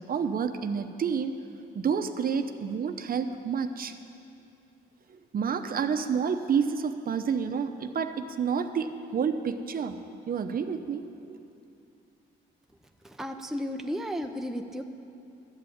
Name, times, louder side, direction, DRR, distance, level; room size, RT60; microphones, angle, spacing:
voice 1, 0.1-1.4 1.7-3.9 5.1-10.0 10.3-11.4, right 6 dB, 45° right, 8 dB, 0.8 m, -29 dB
voice 2, 13.0-14.8, equal, ahead, 4 dB, 0.7 m, -34 dB
12.5 x 7.8 x 8.7 m, 2.6 s
cardioid pair, 90°, 20 cm